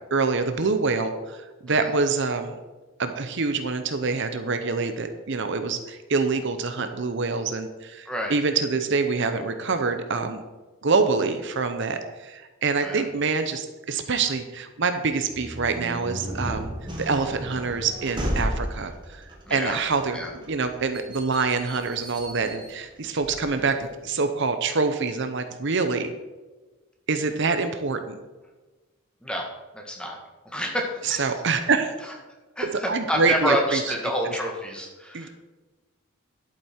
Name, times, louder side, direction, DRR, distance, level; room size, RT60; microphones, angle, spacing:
voice 1, 0.1-2.5 3.0-10.4 10.8-16.7 17.0-26.1 27.1-28.2 31.0-31.9 32.9-33.9 35.1-35.3, right 4 dB, 55° right, 8 dB, 0.8 m, -26 dB
sound 1, 15.3-23.9, equal, 20° right, 1.8 m, -34 dB
voice 2, 19.5-19.8 20.1-20.3 29.2-29.5 29.7-30.2 30.5-31.3 32.6-35.3, equal, 5° left, 0 dB, 1.7 m, -28 dB
11.0 x 8.3 x 4.4 m, 1.2 s
head